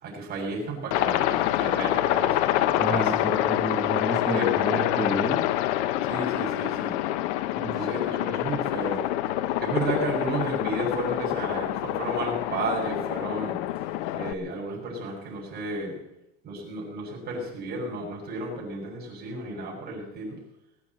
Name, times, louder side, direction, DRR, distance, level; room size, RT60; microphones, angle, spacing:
voice 1, 0.0-3.1 4.2-5.1 6.0-7.0 7.7-9.1 9.6-13.6 14.1-16.0 16.4-20.4, right 1 dB, 30° right, -1 dB, 6.8 m, -32 dB
Aircraft, 0.9-14.3, left 14 dB, 80° left, 1.0 m, -26 dB
voice 2, 2.8-5.4 7.6-7.7, right 1 dB, ahead, 1 dB, 1.6 m, -31 dB
20.5 x 8.8 x 7.8 m, 0.86 s
cardioid pair, 160°, 34 cm